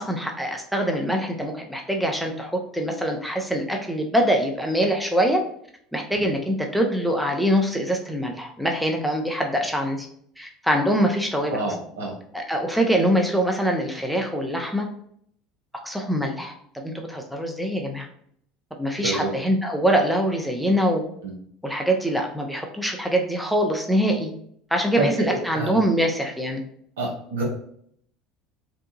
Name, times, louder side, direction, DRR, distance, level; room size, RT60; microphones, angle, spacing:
voice 1, 0.0-5.4 5.9-10.1 10.4-11.6 12.3-14.9 15.8-18.1 18.8-21.0 21.6-24.3 24.7-26.6, equal, ahead, 2 dB, 0.5 m, -24 dB
voice 2, 11.5-12.1 19.0-19.3 21.2-21.3 25.0-25.8 27.0-27.4, right 2 dB, 75° right, -1 dB, 0.8 m, -27 dB
2.8 x 2.3 x 2.5 m, 0.66 s
hypercardioid pair, 70°, 0 cm